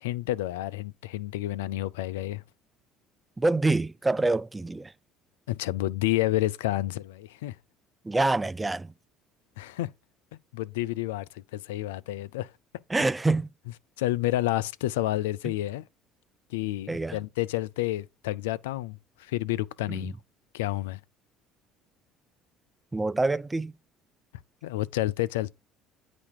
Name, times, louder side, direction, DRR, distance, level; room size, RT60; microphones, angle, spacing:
voice 1, 0.0-2.4 5.5-7.6 9.6-9.9 10.5-12.5 14.0-15.9 16.5-20.1 20.5-21.0 24.6-25.6, left 16 dB, 75° left, 0.3 m, -30 dB
voice 2, 3.4-4.9 8.1-8.9 12.9-13.5 16.9-17.2 19.9-20.0 22.9-23.7, right 2 dB, 15° right, 0.4 m, -26 dB
9.7 x 4.2 x 4.7 m
hypercardioid pair, 60°, 0 cm